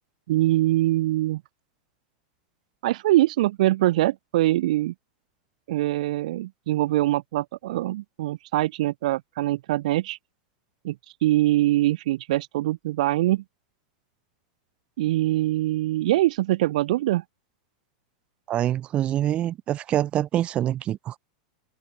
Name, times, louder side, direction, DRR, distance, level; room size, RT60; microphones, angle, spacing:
voice 1, 0.3-1.4 2.8-4.9 5.7-10.2 10.8-11.0 11.2-13.4 15.0-17.2, right 16 dB, 70° right, 0.3 m, -23 dB
voice 2, 18.5-21.2, right 12 dB, 30° right, 0.7 m, -25 dB
supercardioid pair, 145°, 4 cm